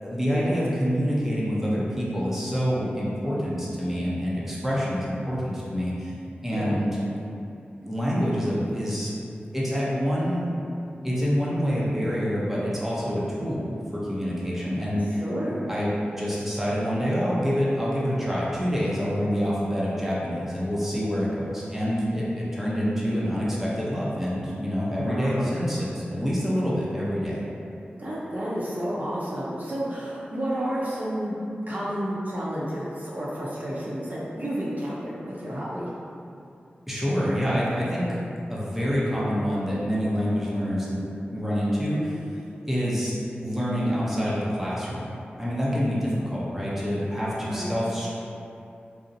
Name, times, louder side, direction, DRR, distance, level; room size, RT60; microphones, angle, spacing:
voice 1, 0.0-6.1 6.4-6.9 7.8-9.1 9.5-10.5 11.0-15.2 15.7-15.9 16.2-27.4 36.9-38.2 38.5-42.2 42.7-45.1 45.4-48.1, equal, 5° right, -8 dB, 0.6 m, -26 dB
voice 2, 15.2-15.7 24.9-25.5 27.9-31.4 31.7-35.9 47.5-47.7, equal, 50° right, -8 dB, 0.6 m, -31 dB
2.5 x 2.0 x 2.7 m, 2.6 s
cardioid pair, 45°, 4 cm